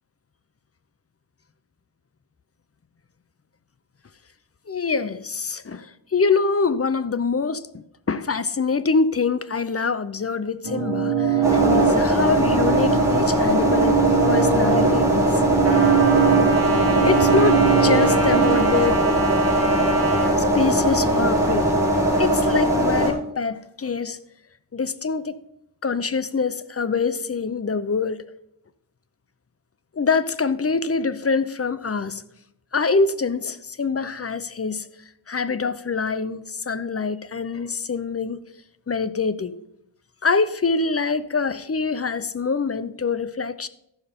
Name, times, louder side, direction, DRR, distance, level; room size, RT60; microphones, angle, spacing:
voice 1, 4.7-15.4 17.0-19.0 20.5-21.7 22.2-24.2 24.7-25.4 25.8-28.2 29.9-32.2 32.7-34.9 35.3-38.4 38.9-39.6 40.2-43.7, left 4 dB, 30° left, 0.6 m, -25 dB
sound 1, 10.6-18.7, right 7 dB, 60° right, 1.8 m, -22 dB
sound 2, 11.4-23.1, right 1 dB, 5° right, 3.5 m, -20 dB
Trumpet, 15.6-20.3, right 4 dB, 30° right, 1.8 m, -27 dB
13.5 x 5.7 x 5.1 m
wide cardioid pair, 75°, 48 cm